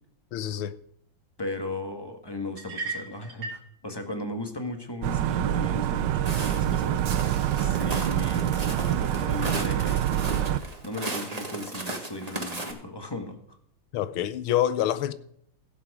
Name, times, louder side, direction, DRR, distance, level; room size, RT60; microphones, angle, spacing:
voice 1, 0.3-0.7 13.9-15.1, left 11 dB, 85° left, 1.6 m, -26 dB
voice 2, 1.4-10.1 10.5-13.6, left 2 dB, 15° left, 1.4 m, -37 dB
sound 1, 2.6-3.7, right 4 dB, 85° right, 3.5 m, -35 dB
sound 2, 5.0-10.6, right 11 dB, 70° right, 1.2 m, -26 dB
Walk footsteps, 6.3-12.7, right 2 dB, 20° right, 1.5 m, -36 dB
16.5 x 7.5 x 4.9 m
omnidirectional pair, 2.3 m